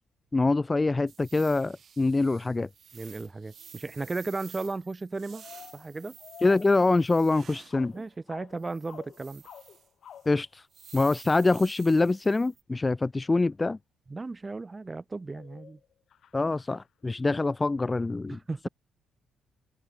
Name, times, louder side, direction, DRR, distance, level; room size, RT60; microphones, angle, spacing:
voice 1, 0.3-2.7 6.4-7.9 10.2-10.6 10.9-13.8 16.3-18.4, left 3 dB, 20° left, 1.4 m, -25 dB
sound 1, 1.1-7.8 8.6-9.9 10.2-10.3 10.7-12.6, right 7 dB, 55° right, 5.1 m, -51 dB
voice 2, 2.9-5.4 5.7-6.2 7.9-9.4 14.1-15.8 18.3-18.7, right 3 dB, 25° right, 4.1 m, -35 dB
sound 2, 3.6-3.7 4.6-4.8 5.3-7.4 7.7-10.5 13.6-13.7 14.7-15.0 15.3-17.5, left 9 dB, 60° left, 6.2 m, -50 dB
cardioid pair, 90°, 0 cm